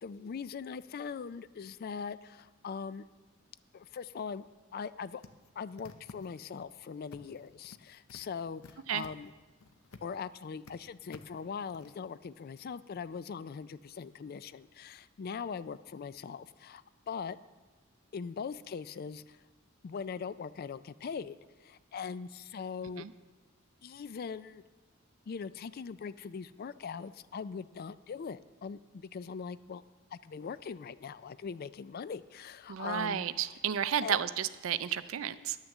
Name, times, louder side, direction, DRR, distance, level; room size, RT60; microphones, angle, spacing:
voice 1, 0.0-3.1 3.7-5.2 5.6-9.3 10.0-17.4 18.1-19.4 19.8-23.1 23.8-24.6 25.3-29.8 30.1-33.3 34.0-34.2, left 6 dB, 45° left, 16 dB, 0.3 m, -41 dB
sound 1, 5.2-6.6 7.1-7.8 8.1-10.2 10.4-10.7 11.1-12.0, left 3 dB, 85° left, 0.7 m, -52 dB
voice 2, 32.7-35.6, right 9 dB, 70° right, 14 dB, 0.4 m, -32 dB
11.0 x 6.4 x 7.2 m, 1.3 s
head